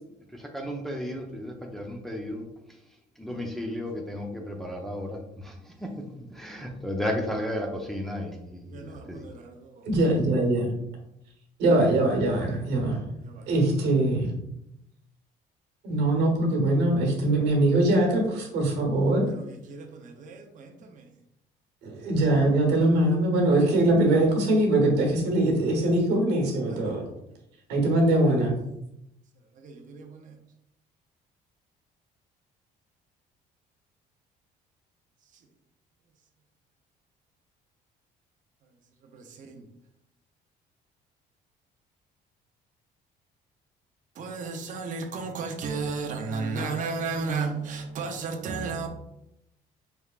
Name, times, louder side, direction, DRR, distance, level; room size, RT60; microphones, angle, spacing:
voice 1, 0.3-2.5 3.2-9.2, left 1 dB, ahead, 0.6 m, -34 dB
voice 2, 8.7-9.9 13.2-13.5 19.3-21.1 26.7-27.1 29.6-30.4 39.1-39.6 44.2-48.9, right 4 dB, 50° right, 0.7 m, -34 dB
voice 3, 9.8-10.7 11.6-13.0 13.5-14.3 15.8-19.3 21.8-27.0 27.7-28.5, right 1 dB, 85° right, 1.1 m, -22 dB
4.3 x 3.4 x 2.4 m
cardioid pair, 110°, 17 cm